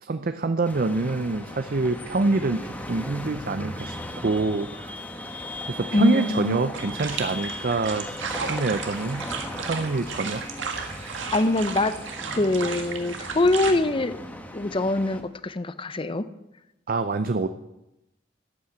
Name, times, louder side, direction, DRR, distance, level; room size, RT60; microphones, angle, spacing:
voice 1, 0.0-4.0 4.2-4.9 5.7-9.3 9.6-10.4 16.9-17.5, right 3 dB, 50° right, 9 dB, 0.6 m, -26 dB
sound 1, 0.6-15.2, left 1 dB, 10° left, 1.4 m, -37 dB
voice 2, 5.9-6.6 11.3-11.9 12.3-14.2 14.5-16.3, left 2 dB, 30° left, 14 dB, 0.7 m, -23 dB
sound 2, 6.7-13.7, right 5 dB, 85° right, 1.7 m, -34 dB
13.0 x 8.6 x 7.8 m, 0.93 s
head